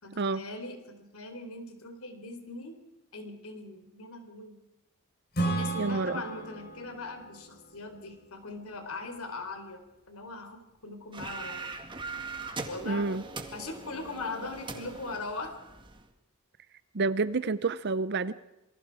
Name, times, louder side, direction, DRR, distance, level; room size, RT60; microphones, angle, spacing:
voice 1, 0.0-2.8 3.1-4.6 5.5-11.7 12.6-13.2 13.5-15.5, left 3 dB, 65° left, 6 dB, 4.1 m, -40 dB
Acoustic guitar / Strum, 5.3-8.9, right 2 dB, 45° left, 4.5 m, -35 dB
voice 2, 5.8-6.2 12.8-13.2 16.9-18.3, right 3 dB, 50° right, 15 dB, 0.7 m, -29 dB
sound 1, 11.1-16.0, right 3 dB, 20° right, 2.1 m, -41 dB
27.5 x 23.0 x 4.8 m, 0.96 s
head